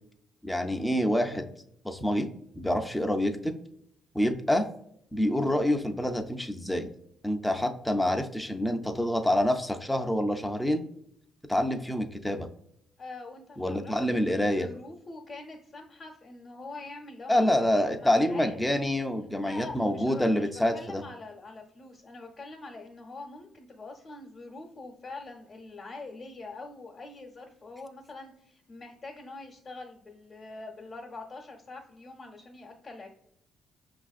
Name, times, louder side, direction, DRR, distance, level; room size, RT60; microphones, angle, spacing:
voice 1, 0.4-1.5 1.8-2.3 2.5-3.5 4.1-4.7 5.1-6.9 7.2-10.8 11.5-12.5 13.6-14.7 17.3-21.0, left 1 dB, 5° left, 5 dB, 0.4 m, -27 dB
voice 2, 13.0-18.8 19.4-33.1, left 3 dB, 40° left, -1 dB, 0.8 m, -44 dB
5.5 x 2.5 x 2.4 m, 0.72 s
cardioid pair, 90°, 0 cm